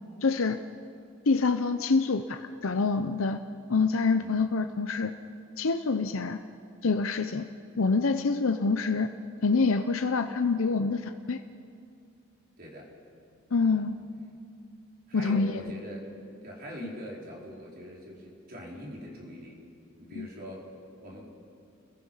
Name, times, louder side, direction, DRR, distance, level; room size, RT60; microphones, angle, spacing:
voice 1, 0.2-0.6 1.3-3.4 3.7-5.1 5.6-6.4 6.8-7.5 7.8-9.1 9.4-11.4 13.5-14.0 15.1-15.6 20.1-20.3, left 4 dB, 75° left, 7 dB, 0.7 m, -26 dB
voice 2, 12.6-12.9 13.6-13.9 15.1-16.1 16.4-19.6 20.0-20.7 21.0-21.3, equal, 45° right, -3 dB, 4.7 m, -43 dB
30.0 x 21.5 x 5.7 m, 2.5 s
head